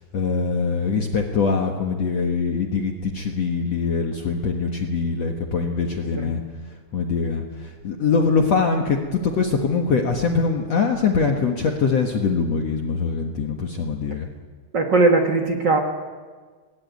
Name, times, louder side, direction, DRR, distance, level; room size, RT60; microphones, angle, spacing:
voice 1, 0.0-6.4 6.9-14.3, left 5 dB, 65° left, 2 dB, 1.7 m, -23 dB
voice 2, 14.7-15.8, right 3 dB, 65° right, 2 dB, 1.0 m, -19 dB
22.0 x 20.0 x 9.4 m, 1.5 s
omnidirectional pair, 5.1 m